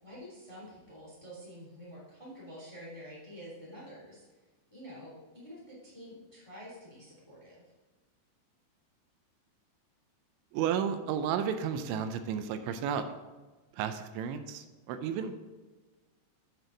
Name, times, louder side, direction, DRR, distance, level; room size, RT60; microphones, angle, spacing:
voice 1, 0.0-4.2 4.7-7.6, equal, 10° left, -6 dB, 2.3 m, -48 dB
voice 2, 10.5-13.1 13.7-15.3, right 8 dB, 85° right, 9 dB, 3.0 m, -32 dB
8.3 x 8.1 x 3.9 m, 1.2 s
omnidirectional pair, 5.3 m